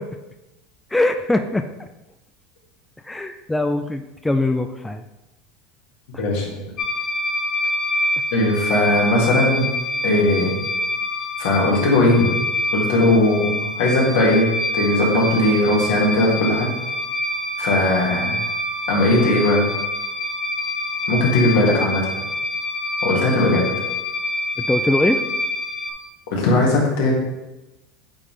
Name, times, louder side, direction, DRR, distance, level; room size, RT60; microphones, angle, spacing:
voice 1, 0.9-1.9 3.0-5.0 6.1-6.2 24.6-25.2, left 2 dB, 10° left, 6 dB, 0.3 m, -22 dB
voice 2, 6.2-6.5 8.3-9.7 10.0-10.6 11.4-12.3 12.7-14.5 14.7-16.7 17.6-18.4 18.9-19.6 21.1-22.0 23.0-23.7 26.3-27.1, left 2 dB, 75° left, -3 dB, 2.0 m, -18 dB
sound 1, 6.8-25.9, left 1 dB, 45° left, 1.1 m, -26 dB
8.5 x 3.6 x 3.3 m, 0.99 s
supercardioid pair, 110°, 0 cm